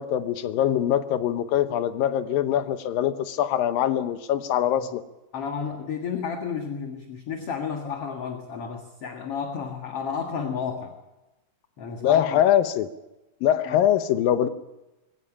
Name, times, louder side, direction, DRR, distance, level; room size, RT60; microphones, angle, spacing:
voice 1, 0.0-5.0 12.0-12.9 13.4-14.5, left 10 dB, 80° left, 12 dB, 2.7 m, -23 dB
voice 2, 5.3-10.9 11.8-12.4 13.7-13.8, left 6 dB, 50° left, 5 dB, 2.3 m, -32 dB
22.0 x 16.5 x 9.9 m, 0.99 s
omnidirectional pair, 4.1 m